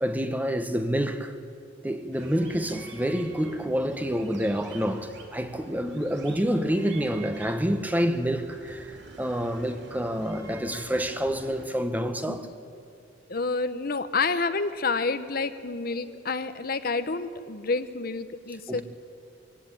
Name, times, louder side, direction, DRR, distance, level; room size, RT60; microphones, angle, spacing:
voice 1, 0.0-1.3 1.8-12.5 18.7-18.8, equal, 10° right, 1.1 m, -28 dB
sound 1, 2.1-11.7, right 2 dB, 65° right, 3.4 m, -47 dB
voice 2, 13.3-18.8, left 4 dB, 50° left, 0.9 m, -29 dB
23.5 x 17.0 x 9.0 m
head